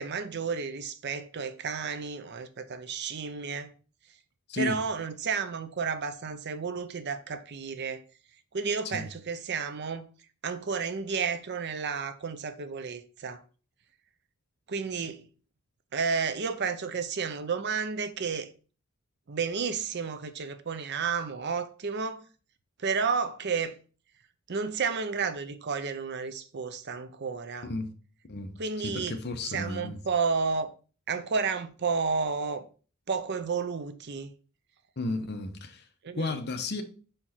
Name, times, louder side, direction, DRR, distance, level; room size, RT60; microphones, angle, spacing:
voice 1, 0.0-3.7 4.6-8.0 8.5-10.1 10.4-13.4 14.7-15.2 15.9-18.5 19.3-22.2 22.8-23.8 24.5-27.7 28.6-29.2 29.5-30.7 31.1-32.7 33.1-34.3 36.0-36.3, right 5 dB, 50° right, 0.6 m, -31 dB
voice 2, 28.8-30.0 35.0-35.8 36.2-36.8, left 2 dB, 50° left, 0.8 m, -33 dB
5.1 x 4.4 x 4.2 m
head